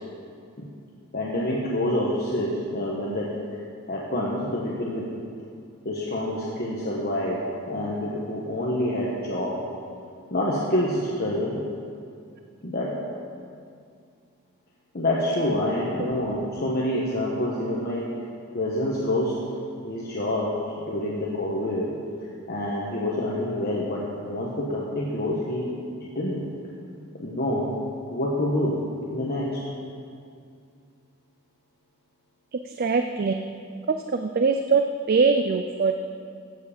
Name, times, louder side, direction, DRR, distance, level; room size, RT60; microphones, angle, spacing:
voice 1, 1.1-3.3 3.9-5.1 5.8-9.6 10.3-11.6 12.6-13.0 14.9-18.1 18.5-19.4 19.8-21.9 22.5-25.7 26.1-26.5 27.2-27.7 28.1-29.6, left 1 dB, 45° left, -5 dB, 1.2 m, -27 dB
voice 2, 32.5-33.5 33.9-35.9, right 4 dB, 40° right, 6 dB, 0.4 m, -23 dB
14.5 x 7.5 x 5.1 m, 2.3 s
head